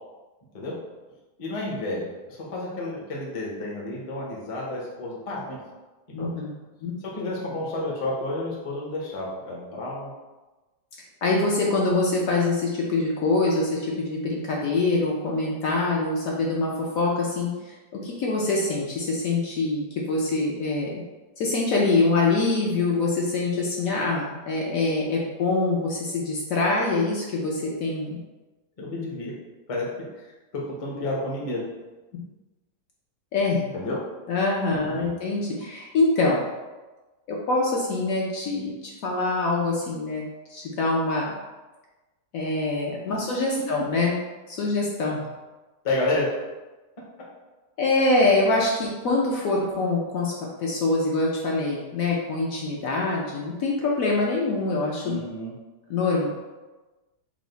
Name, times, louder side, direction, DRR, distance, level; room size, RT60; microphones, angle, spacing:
voice 1, 1.4-5.6 6.2-6.3 7.0-10.1 28.8-29.3 29.7-29.9 30.1-30.2 30.5-31.6 33.7-34.0 34.7-35.1 45.8-46.3 55.0-55.5, left 2 dB, 40° left, -4 dB, 0.5 m, -30 dB
voice 2, 6.1-6.5 6.8-6.9 11.2-17.5 17.9-20.9 21.4-28.2 32.1-32.2 33.3-33.6 34.3-36.4 37.3-40.2 40.5-41.3 42.3-44.1 44.5-45.2 47.8-50.3 50.6-55.2 55.9-56.3, left 3 dB, 65° left, -3 dB, 0.9 m, -24 dB
4.8 x 2.1 x 3.9 m, 1.2 s
omnidirectional pair, 1.8 m